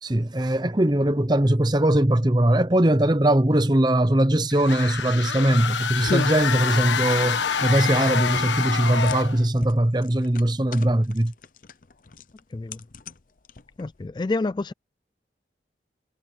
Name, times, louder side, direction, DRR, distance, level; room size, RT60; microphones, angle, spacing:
voice 1, 0.0-11.3, right 1 dB, 25° right, 0.9 m, -21 dB
sound 1, 4.5-9.4, left 6 dB, 90° left, 1.3 m, -26 dB
sound 2, 6.0-14.1, left 3 dB, 45° left, 0.7 m, -38 dB
voice 2, 12.5-12.8 13.8-14.7, left 3 dB, 25° left, 0.3 m, -28 dB
head